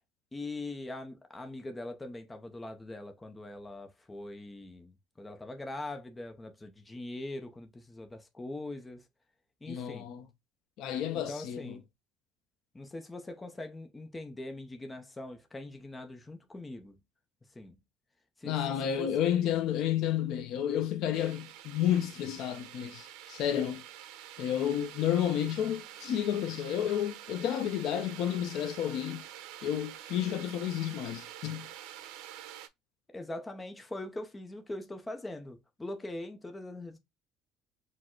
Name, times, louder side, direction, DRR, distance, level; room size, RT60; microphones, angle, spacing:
voice 1, 0.3-9.0 9.6-10.1 11.1-11.8 12.7-17.0 17.5-17.8 18.4-18.6 19.0-19.1 33.1-37.0, left 2 dB, 10° left, 0.5 m, -42 dB
voice 2, 9.7-10.3 10.8-11.8 18.4-23.8 24.4-29.2 29.6-31.7, left 10 dB, 55° left, 0.6 m, -31 dB
sound 1, 21.1-32.7, right 12 dB, 85° right, 0.7 m, -47 dB
4.3 x 2.0 x 4.4 m
cardioid pair, 175°, 0 cm